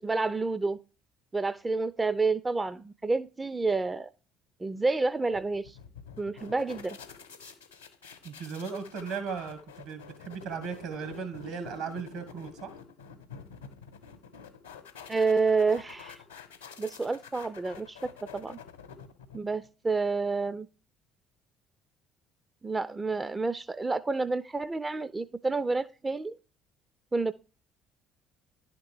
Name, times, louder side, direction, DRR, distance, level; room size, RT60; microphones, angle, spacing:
voice 1, 0.0-0.8 1.3-4.1 4.6-5.8 6.2-7.0 15.1-16.2 16.8-18.6 19.3-20.7 22.6-26.4 27.1-27.3, right 3 dB, 20° right, 0.4 m, -29 dB
sound 1, 5.3-19.7, left 6 dB, 85° left, 0.8 m, -48 dB
voice 2, 8.2-12.7, right 6 dB, 70° right, 1.5 m, -37 dB
11.0 x 3.7 x 4.8 m
figure-of-eight pair, 55°, 0 cm